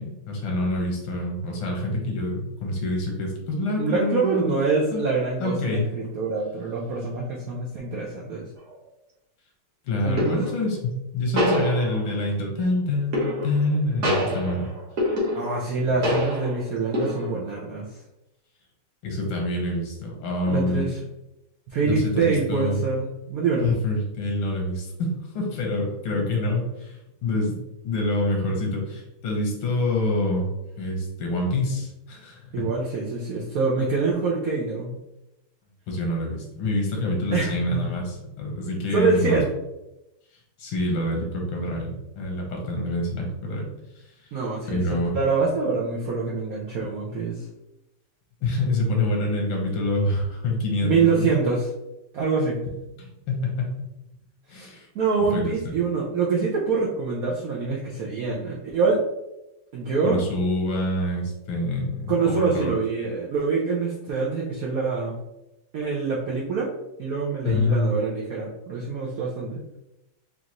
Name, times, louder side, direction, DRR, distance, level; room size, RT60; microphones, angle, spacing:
voice 1, 0.0-4.6 4.9-5.0 5.4-5.9 9.9-14.7 16.0-16.1 19.0-20.9 21.9-22.8 23.6-30.5 30.8-32.7 35.9-39.4 40.6-43.8 44.7-45.2 48.4-51.3 53.0-53.9 54.5-54.9 55.3-55.7 60.0-62.7 67.4-67.9, left 1 dB, 80° left, 0 dB, 1.9 m, -26 dB
voice 2, 3.8-8.5 10.0-10.4 15.3-18.0 20.5-21.0 21.7-23.7 26.1-26.2 32.5-35.0 37.3-37.9 38.9-39.5 44.3-47.4 50.8-51.7 52.1-52.6 54.5-59.0 59.7-60.2 62.1-65.1 65.7-66.7 67.0-69.6, right 4 dB, 75° right, -4 dB, 0.8 m, -25 dB
sound 1, 8.6-8.8 10.2-10.7 11.4-12.3 13.1-13.7 14.0-15.7 16.0-16.6 16.9-17.5, equal, 45° right, 1.1 m, -26 dB
5.3 x 2.5 x 3.0 m, 0.92 s
omnidirectional pair, 2.3 m